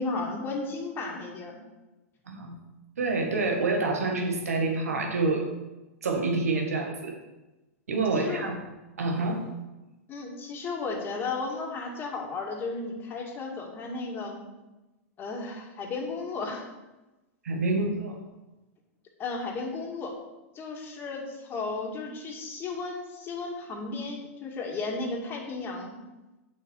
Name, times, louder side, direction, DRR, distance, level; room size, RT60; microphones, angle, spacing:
voice 1, 0.0-1.6 8.1-8.4 10.1-14.4 15.2-16.6 19.2-20.1 20.5-26.0, left 3 dB, 30° left, 1 dB, 2.1 m, -34 dB
voice 2, 2.3-2.6 3.0-5.5 6.0-7.2 7.9-8.6 9.0-9.4 17.4-18.2, right 3 dB, 90° right, 2 dB, 2.0 m, -27 dB
8.5 x 6.6 x 6.3 m, 1.1 s
hypercardioid pair, 125°, 8 cm